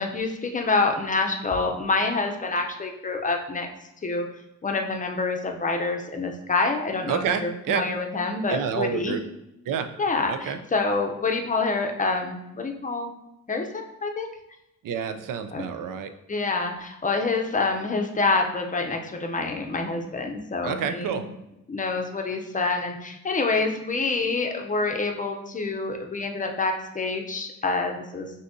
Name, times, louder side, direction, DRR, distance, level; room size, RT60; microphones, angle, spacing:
voice 1, 0.0-3.7 4.0-4.3 4.6-9.2 10.0-13.1 13.5-14.3 15.5-15.7 16.3-21.3 21.7-28.3, left 3 dB, 25° left, 3 dB, 0.6 m, -27 dB
voice 2, 7.1-7.8 8.5-9.2 9.7-9.9 10.3-10.6 14.8-16.1 20.6-21.2, right 7 dB, 90° right, 8 dB, 0.5 m, -28 dB
6.2 x 2.8 x 2.6 m, 0.87 s
cardioid pair, 95°, 32 cm